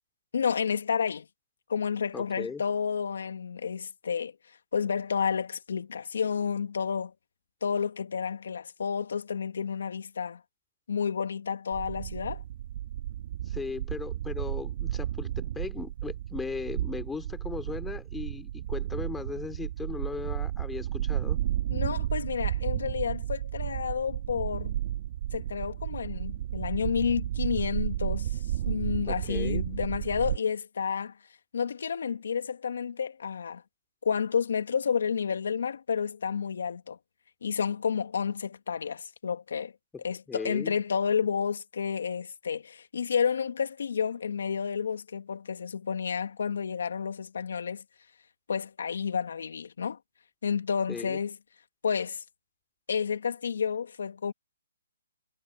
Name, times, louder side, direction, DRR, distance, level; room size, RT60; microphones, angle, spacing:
voice 1, 0.3-1.2 1.7-4.3 4.7-7.1 7.6-10.4 10.9-12.4 21.7-24.7 25.3-28.4 28.7-31.1 31.5-33.6 34.0-37.0 37.4-39.7 40.0-47.8 48.5-50.0 50.4-51.4 51.8-52.2 52.9-54.3, left 6 dB, 70° left, 2.6 m, -30 dB
voice 2, 2.1-2.6 13.5-21.4 29.1-29.6 40.3-40.8 50.9-51.2, left 5 dB, 5° left, 3.3 m, -37 dB
sound 1, 11.7-30.4, right 12 dB, 45° right, 1.9 m, -33 dB
hypercardioid pair, 160°, 0 cm